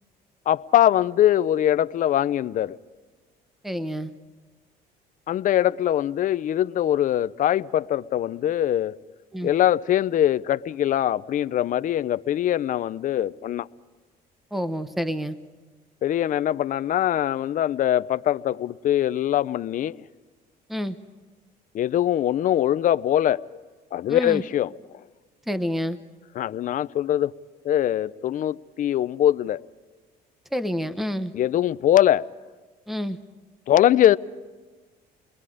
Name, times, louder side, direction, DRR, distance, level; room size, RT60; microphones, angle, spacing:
voice 1, 0.5-2.8 5.3-8.9 9.4-13.7 16.0-20.0 21.7-23.4 23.9-25.0 26.4-27.3 27.6-29.6 31.3-32.3 33.7-34.2, left 11 dB, 50° left, 0.6 m, -22 dB
voice 2, 3.6-4.1 9.3-9.5 14.5-15.4 20.7-21.0 24.1-24.4 25.5-26.0 30.5-31.3 32.9-33.2, equal, ahead, 1.0 m, -28 dB
29.5 x 21.5 x 5.0 m
cardioid pair, 110°, 17 cm